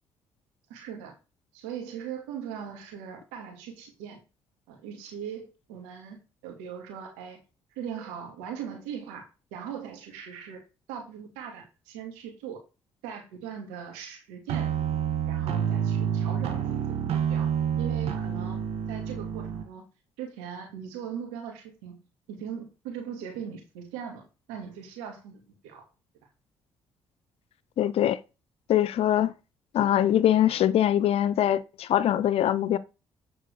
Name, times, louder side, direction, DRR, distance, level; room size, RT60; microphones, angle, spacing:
voice 1, 0.7-1.1 1.5-4.2 4.7-6.2 6.4-7.4 7.8-10.6 10.9-12.6 13.0-15.0 15.3-17.5 17.8-19.9 20.2-22.0 22.3-25.8, right 8 dB, 90° right, 2.6 m, -40 dB
sound 1, 14.5-19.6, right 8 dB, 70° right, 1.8 m, -28 dB
voice 2, 27.8-28.2 28.7-29.3 29.7-32.8, left 11 dB, 65° left, 0.7 m, -23 dB
8.9 x 4.6 x 4.9 m
supercardioid pair, 55°, 11 cm